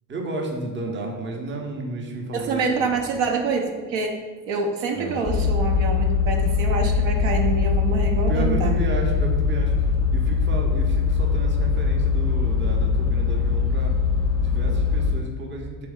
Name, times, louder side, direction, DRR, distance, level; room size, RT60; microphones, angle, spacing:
voice 1, 0.1-3.2 4.9-5.2 8.0-9.7 10.1-13.9 14.4-15.9, right 2 dB, 25° right, 1 dB, 0.7 m, -32 dB
voice 2, 2.3-4.2 4.5-8.8, right 4 dB, 65° right, 2 dB, 0.7 m, -26 dB
sound 1, 5.2-15.1, left 5 dB, 10° left, 0.3 m, -22 dB
3.5 x 2.9 x 3.6 m, 1.4 s
hypercardioid pair, 65°, 49 cm